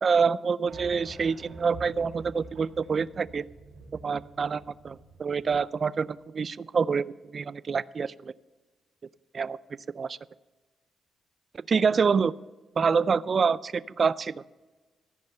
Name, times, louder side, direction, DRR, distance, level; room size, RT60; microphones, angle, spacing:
voice 1, 0.0-3.5 4.0-8.3 9.3-9.6 9.9-10.2 11.7-12.3 12.8-14.4, right 5 dB, 45° right, 19 dB, 0.3 m, -26 dB
sound 1, 0.7-5.9, right 3 dB, 85° right, 2.0 m, -48 dB
14.0 x 5.4 x 6.6 m, 1.3 s
cardioid pair, 95°, 0 cm